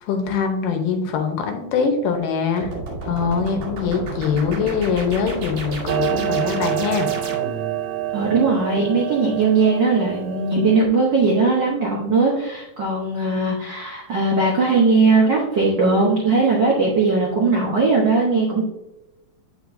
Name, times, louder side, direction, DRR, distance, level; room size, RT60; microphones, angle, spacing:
voice 1, 0.0-2.7 3.0-7.1, left 6 dB, 80° left, 5 dB, 2.6 m, -23 dB
sound 1, 2.6-7.8, right 2 dB, 50° right, 2.3 m, -31 dB
Clock, 5.9-10.9, right 12 dB, 90° right, 2.2 m, -27 dB
voice 2, 8.1-18.6, right 3 dB, 70° right, -3 dB, 1.0 m, -19 dB
8.4 x 5.6 x 2.6 m, 0.95 s
omnidirectional pair, 3.8 m